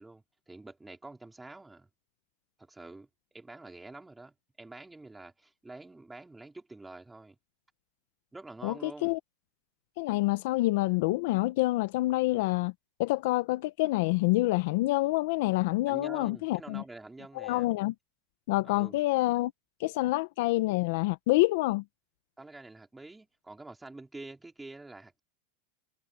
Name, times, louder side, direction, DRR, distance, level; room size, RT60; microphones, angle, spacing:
voice 1, 0.0-1.9 2.6-7.4 8.3-9.1 15.9-17.7 18.6-19.0 22.4-25.2, right 2 dB, 5° right, 4.2 m, -47 dB
voice 2, 8.6-9.2 10.0-12.7 13.0-16.8 17.3-17.9 18.5-19.5 19.8-21.8, left 19 dB, 60° left, 0.6 m, -27 dB
supercardioid pair, 165°, 0 cm